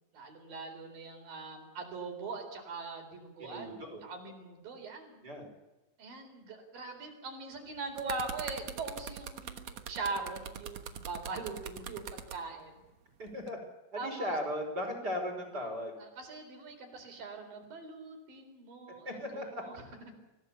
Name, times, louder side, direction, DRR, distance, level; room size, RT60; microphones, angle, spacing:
voice 1, 0.1-5.2 6.0-12.8 14.0-14.4 16.0-19.9, right 3 dB, 80° right, 4 dB, 5.8 m, -42 dB
voice 2, 3.4-4.0 5.2-5.5 13.2-13.6 13.9-15.9 19.1-19.6, left 1 dB, 25° right, 3 dB, 5.6 m, -37 dB
sound 1, 7.7-12.4 13.3-13.5, right 8 dB, 60° right, 2.2 m, -42 dB
25.5 x 17.0 x 7.1 m, 1.1 s
omnidirectional pair, 4.0 m